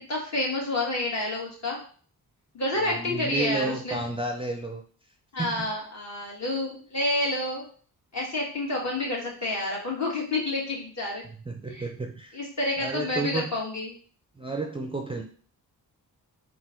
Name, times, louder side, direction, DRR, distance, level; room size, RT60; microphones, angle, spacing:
voice 1, 0.1-1.8 2.5-4.0 5.3-7.6 8.1-11.2 11.6-11.9 12.3-14.0, left 2 dB, 45° left, -3 dB, 1.9 m, -29 dB
voice 2, 2.8-4.8 5.4-5.7 11.5-12.4 12.8-13.5 14.4-15.2, right 2 dB, 15° right, 3 dB, 0.5 m, -31 dB
3.7 x 2.4 x 4.3 m, 0.43 s
cardioid pair, 65°, 37 cm